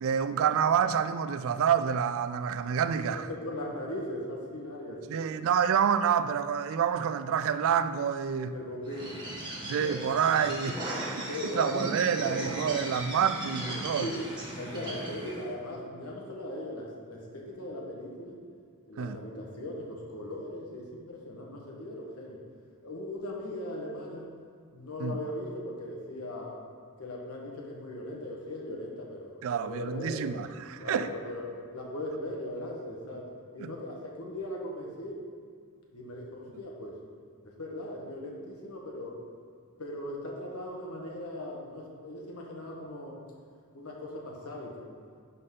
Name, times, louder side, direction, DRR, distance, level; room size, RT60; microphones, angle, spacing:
voice 1, 0.0-3.3 5.1-8.5 9.6-14.1 19.0-19.2 25.0-25.2 29.4-31.1 33.6-33.7, right 7 dB, 65° right, 0.3 m, -28 dB
voice 2, 3.1-5.4 8.4-9.2 10.3-10.4 11.2-11.7 13.7-14.2 14.6-18.4 18.9-22.4 22.8-24.3 24.7-26.6 27.0-30.3 30.8-35.2 35.9-37.0 37.6-39.2 39.8-43.2 43.7-44.9, left 1 dB, 75° left, 1.4 m, -39 dB
Bird, 8.8-15.5, right 1 dB, 20° right, 1.7 m, -37 dB
11.5 x 4.1 x 3.8 m
head